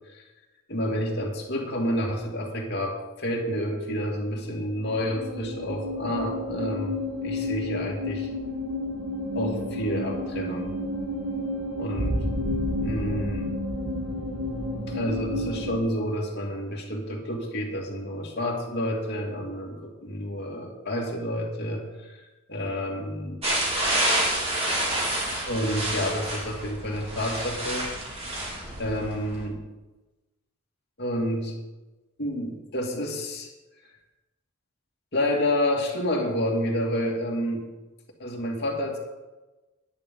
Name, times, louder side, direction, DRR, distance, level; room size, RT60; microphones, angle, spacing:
voice 1, 0.7-8.3 9.3-10.7 11.8-12.2 12.8-13.5 14.9-22.1 22.5-23.4 25.3-27.9 28.8-29.6 31.0-31.6 32.2-33.5 35.1-37.7 38.2-39.0, equal, 50° left, -1 dB, 2.5 m, -29 dB
sound 1, 4.5-15.8, left 1 dB, 85° right, 2.4 m, -31 dB
sound 2, 23.4-29.4, right 1 dB, 30° right, 3.2 m, -28 dB
11.0 x 10.5 x 5.5 m, 1.1 s
head